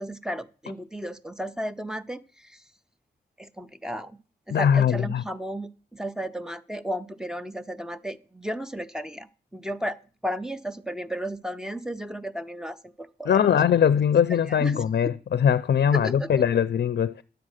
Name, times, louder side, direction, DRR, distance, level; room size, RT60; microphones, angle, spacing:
voice 1, 0.0-2.6 3.4-4.2 4.5-13.6 14.5-15.1 15.9-16.4, equal, 5° right, 0.5 m, -34 dB
voice 2, 4.5-5.2 13.3-17.2, left 8 dB, 70° left, 0.4 m, -21 dB
10.5 x 7.4 x 6.4 m
wide cardioid pair, 135°, 17 cm